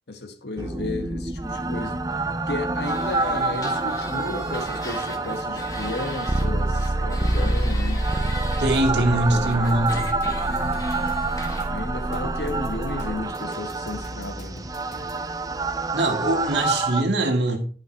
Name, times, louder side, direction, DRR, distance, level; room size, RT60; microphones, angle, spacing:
voice 1, 0.1-2.0 2.5-8.0 8.9-9.9 10.5-11.2 11.7-14.6, left 2 dB, 65° left, 1.3 m, -34 dB
sound 1, 0.6-17.0, right 2 dB, 20° right, 0.5 m, -26 dB
sound 2, 2.8-6.5 6.7-8.8 9.4-11.7, left 2 dB, 20° left, 1.5 m, -39 dB
voice 2, 8.6-10.1 15.9-17.6, right 1 dB, 70° right, 2.1 m, -22 dB
sound 3, 9.7-15.3, left 1 dB, 40° left, 3.3 m, -44 dB
11.5 x 5.6 x 4.5 m
head